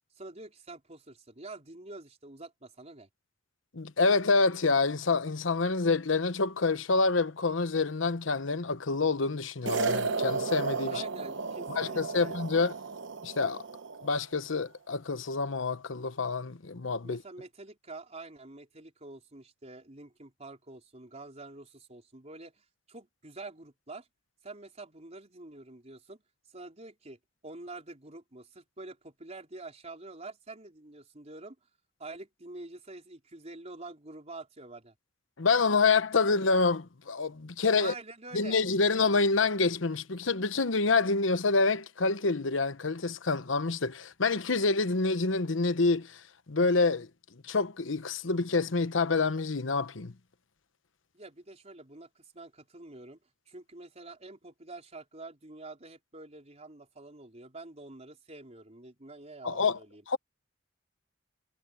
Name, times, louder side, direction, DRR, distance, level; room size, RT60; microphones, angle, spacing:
voice 1, 0.2-3.1 10.9-12.3 17.0-24.1 24.4-26.2 26.5-31.6 32.0-34.9 37.8-38.6 51.1-53.2 53.5-60.0, right 2 dB, 35° right, 4.0 m, -47 dB
voice 2, 3.7-11.0 11.7-12.7 13.2-13.6 14.0-17.2 35.4-37.9 38.3-46.2 46.5-47.1 47.4-50.1 59.4-59.8 60.1-60.2, left 4 dB, 90° left, 1.0 m, -27 dB
sound 1, 9.7-14.1, right 4 dB, 70° right, 0.9 m, -33 dB
head